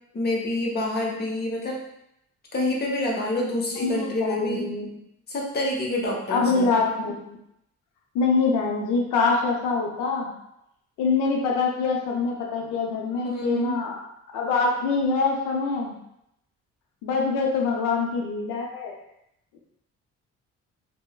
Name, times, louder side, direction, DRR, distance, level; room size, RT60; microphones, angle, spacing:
voice 1, 0.1-1.8 2.5-4.7 5.3-6.7 13.2-13.8, left 1 dB, 35° left, -2 dB, 0.7 m, -27 dB
voice 2, 3.8-4.9 6.3-7.4 8.1-10.3 11.0-14.0 14.3-16.0 17.0-19.0, left 4 dB, 85° left, -1 dB, 0.5 m, -24 dB
3.1 x 2.0 x 2.2 m, 0.79 s
cardioid pair, 90°, 30 cm